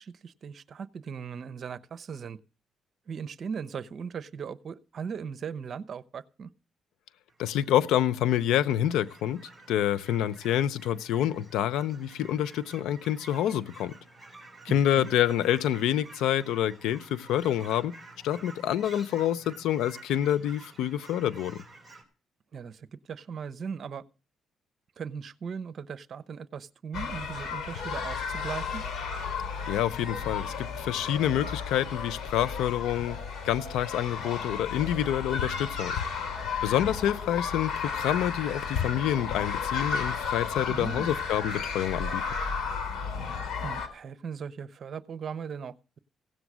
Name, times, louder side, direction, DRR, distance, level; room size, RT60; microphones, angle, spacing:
voice 1, 0.0-2.4 3.1-6.5 14.7-15.1 22.5-24.0 25.0-28.8 40.7-41.1 43.6-46.0, right 6 dB, 50° right, 0.8 m, -38 dB
Fowl / Chirp tweet, 7.3-22.0, right 3 dB, ahead, 4.5 m, -51 dB
voice 2, 7.4-13.9 14.6-17.9 18.2-21.6 29.7-33.2 33.4-36.0 36.6-42.2, left 11 dB, 90° left, 0.6 m, -27 dB
sound 1, 26.9-43.9, left 6 dB, 70° left, 3.6 m, -33 dB
16.5 x 8.0 x 6.2 m
cardioid pair, 90°, 0 cm